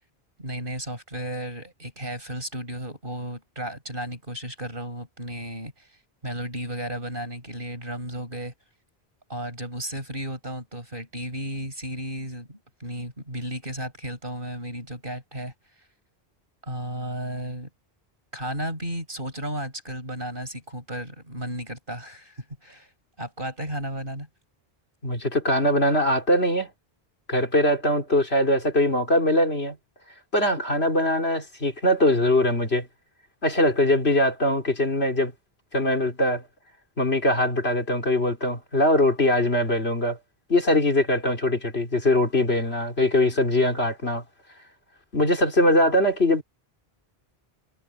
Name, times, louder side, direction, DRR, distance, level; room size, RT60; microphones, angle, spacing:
voice 1, 0.4-8.5 9.3-15.5 16.6-17.7 18.3-22.9 23.2-24.3, right 1 dB, 60° right, 7.6 m, -34 dB
voice 2, 25.0-26.7 27.3-29.8 30.3-32.9 33.4-35.3 35.7-36.4 37.0-40.2 40.5-44.2 45.1-46.4, left 1 dB, 85° left, 4.3 m, -22 dB
omnidirectional pair, 1.0 m